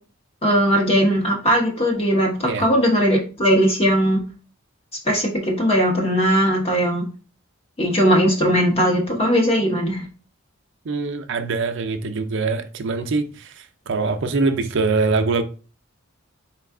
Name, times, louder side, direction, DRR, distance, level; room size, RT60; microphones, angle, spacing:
voice 1, 0.4-4.2 5.1-7.0 7.8-10.0, equal, 25° left, 0.9 m, -19 dB
voice 2, 10.9-15.4, right 3 dB, 55° right, 0.5 m, -23 dB
4.4 x 2.3 x 3.5 m
head